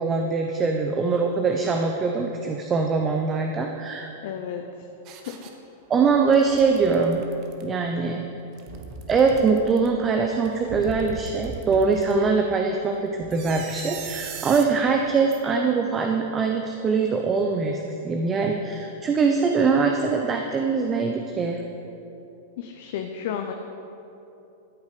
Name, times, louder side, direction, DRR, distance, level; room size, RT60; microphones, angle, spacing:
voice 1, 0.0-4.1 5.9-7.3 7.6-8.2 9.1-21.6, right 4 dB, 25° right, 3 dB, 0.8 m, -23 dB
voice 2, 4.2-4.6 22.6-23.5, left 9 dB, 60° left, 4 dB, 0.7 m, -32 dB
sound 1, 5.0-5.5 6.0-7.6 8.4-9.9 10.4-12.1 13.2-14.7 15.3-15.4, right 5 dB, 45° right, 1.3 m, -38 dB
13.5 x 8.2 x 5.1 m, 3.0 s
hypercardioid pair, 100°, 0 cm